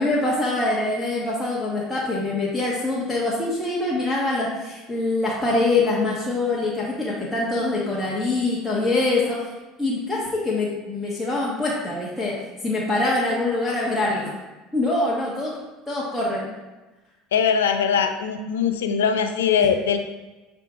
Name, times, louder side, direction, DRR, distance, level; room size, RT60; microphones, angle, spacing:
voice 1, 0.0-9.5 9.8-12.3 12.6-14.3 14.7-15.5 15.9-16.5 19.6-19.7, left 2 dB, 5° left, -7 dB, 1.4 m, -24 dB
voice 2, 17.3-20.0, left 7 dB, 85° left, 7 dB, 0.5 m, -21 dB
7.7 x 3.6 x 3.7 m, 1.1 s
hypercardioid pair, 80°, 0 cm